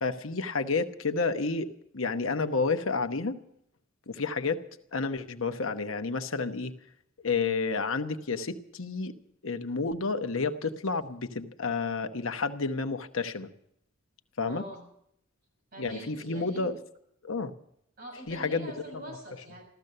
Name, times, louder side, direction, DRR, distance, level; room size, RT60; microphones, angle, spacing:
voice 1, 0.0-3.4 4.1-4.6 4.9-6.7 7.2-9.1 9.4-13.5 14.4-14.6 15.8-16.8 17.2-17.5 18.3-18.7, left 4 dB, 75° left, 7 dB, 1.0 m, -30 dB
voice 2, 14.5-14.9 15.7-16.7 18.0-19.6, right 1 dB, 50° right, -1 dB, 7.1 m, -44 dB
15.0 x 13.5 x 6.6 m, 0.72 s
head